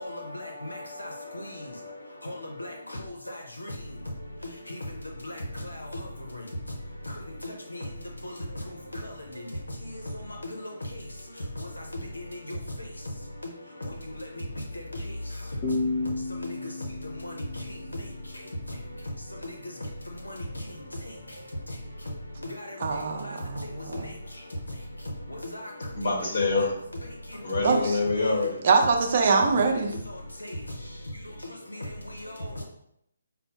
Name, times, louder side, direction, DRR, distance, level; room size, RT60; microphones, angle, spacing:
voice 1, 0.0-26.0 27.3-27.6 29.3-29.4 29.9-30.7 31.4-32.6, left 1 dB, 85° left, 0.6 m, -38 dB
sound 1, 15.6-19.0, left 2 dB, 25° left, 0.6 m, -33 dB
voice 2, 22.8-24.1 27.6-28.0 28.6-30.0, right 4 dB, 45° right, 0.6 m, -24 dB
voice 3, 25.9-26.7 27.4-28.6, left 3 dB, 50° left, 1.4 m, -25 dB
5.3 x 2.0 x 2.8 m
figure-of-eight pair, 145°, 0 cm